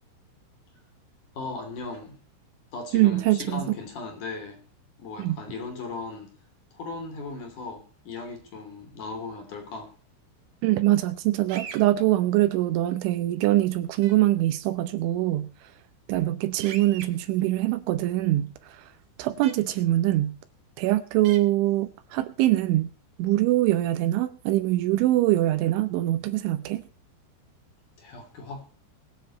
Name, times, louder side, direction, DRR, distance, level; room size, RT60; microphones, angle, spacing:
voice 1, 1.4-2.2 2.7-4.6 5.0-6.3 6.7-9.9 28.0-28.7, left 3 dB, 45° left, 4.0 m, -37 dB
voice 2, 2.9-3.8 5.2-5.4 10.6-15.5 16.1-18.8 19.2-20.4 20.8-22.9 23.2-26.8, right 15 dB, 80° right, 3.1 m, -23 dB
sound 1, 11.5-11.8 14.0-14.1 16.6-17.1 19.4-19.5 21.2-21.4, right 7 dB, 60° right, 2.3 m, -39 dB
22.0 x 7.5 x 4.2 m
omnidirectional pair, 5.7 m